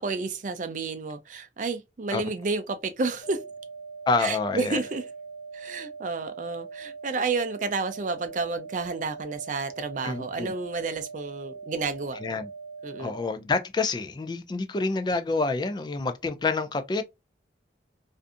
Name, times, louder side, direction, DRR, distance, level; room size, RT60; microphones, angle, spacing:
voice 1, 0.0-3.4 4.2-5.0 5.5-12.2 12.8-13.1, right 4 dB, 45° right, 0.4 m, -31 dB
sound 1, 3.2-13.2, right 4 dB, 60° left, 0.8 m, -41 dB
voice 2, 4.1-4.8 10.0-10.5 12.2-12.5 13.0-17.0, left 3 dB, 25° left, 0.3 m, -27 dB
2.5 x 2.4 x 2.5 m
head